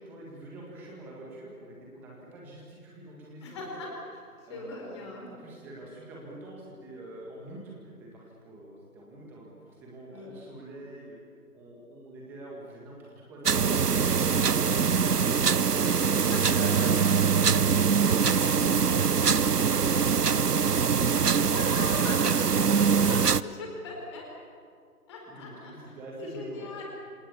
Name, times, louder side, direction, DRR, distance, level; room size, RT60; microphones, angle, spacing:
voice 1, 0.1-3.9 4.5-11.2 11.5-14.4 15.6-17.1 17.9-18.9 22.0-22.9 25.3-26.8, right 1 dB, 5° right, -3 dB, 1.8 m, -45 dB
voice 2, 3.4-4.2 4.5-5.3 10.1-10.3 16.3-17.1 21.4-24.3 25.1-26.8, left 2 dB, 20° left, 0 dB, 4.6 m, -40 dB
sound 1, 13.4-23.4, right 6 dB, 90° right, 0.8 m, -23 dB
27.5 x 26.5 x 7.1 m, 2.1 s
figure-of-eight pair, 160°, 46 cm